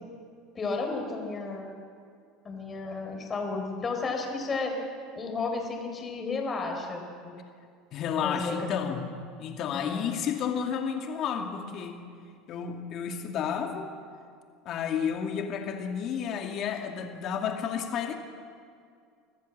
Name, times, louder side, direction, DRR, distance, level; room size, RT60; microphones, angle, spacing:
voice 1, 0.5-1.7 2.4-4.8 5.1-7.3 8.2-9.0 9.7-10.1, left 3 dB, 30° left, 3 dB, 4.7 m, -33 dB
voice 2, 7.9-9.0 9.4-12.0 12.5-13.9 14.6-18.2, left 7 dB, 50° left, 4 dB, 2.4 m, -31 dB
25.5 x 14.5 x 7.5 m, 2.2 s
hypercardioid pair, 80°, 0 cm